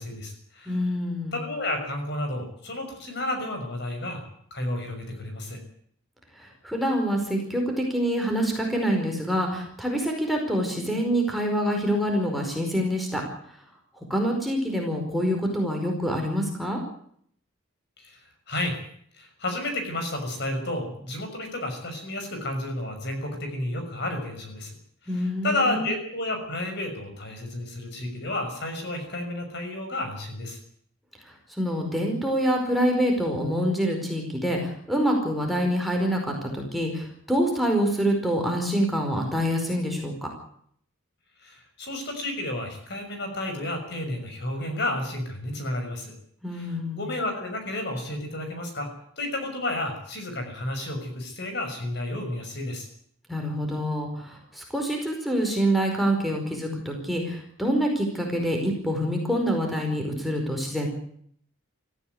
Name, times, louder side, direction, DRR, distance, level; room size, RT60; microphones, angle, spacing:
voice 1, 0.0-0.7 1.3-4.2 4.5-5.6 18.0-18.8 19.1-24.8 25.1-30.6 41.4-46.1 46.5-48.9 49.2-52.9, left 1 dB, 55° left, 5 dB, 6.2 m, -31 dB
voice 2, 0.7-1.4 6.3-13.6 14.0-16.8 25.1-25.9 31.2-40.3 46.4-47.0 53.3-60.9, equal, ahead, 1 dB, 4.8 m, -26 dB
18.0 x 15.5 x 9.6 m, 0.64 s
head